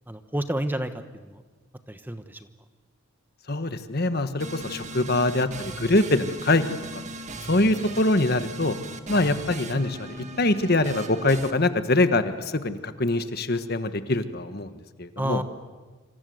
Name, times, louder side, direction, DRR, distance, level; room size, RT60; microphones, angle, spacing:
voice 1, 0.1-1.4 1.9-2.5 15.2-15.4, right 1 dB, 10° right, 9 dB, 1.1 m, -30 dB
voice 2, 3.5-6.6 6.9-7.0 7.5-8.8 9.1-15.4, left 2 dB, 45° left, 10 dB, 1.4 m, -24 dB
sound 1, 4.4-11.5, right 2 dB, 35° right, 1.8 m, -38 dB
27.5 x 27.0 x 7.9 m, 1.3 s
head